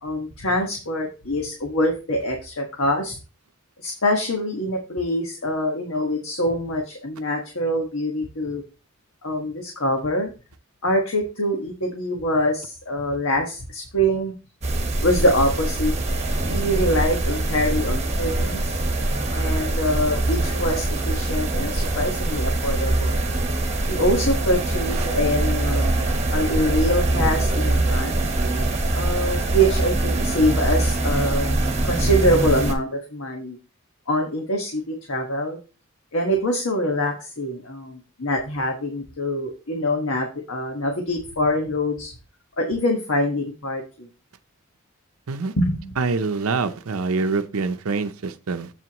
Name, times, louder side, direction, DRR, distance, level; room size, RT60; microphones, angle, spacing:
voice 1, 0.0-3.2 3.8-8.6 9.2-10.3 10.8-14.3 15.0-15.9 16.4-18.8 19.3-23.2 23.9-28.3 28.9-31.6 31.8-33.6 34.1-35.6 36.1-42.1 42.6-44.1 45.6-45.9, equal, 70° left, 2 dB, 1.4 m, -24 dB
sound 1, 14.6-32.7, right 2 dB, 30° right, 1.3 m, -23 dB
voice 2, 46.0-48.7, right 4 dB, 85° right, 9 dB, 0.6 m, -25 dB
8.0 x 7.7 x 3.0 m, 0.33 s
head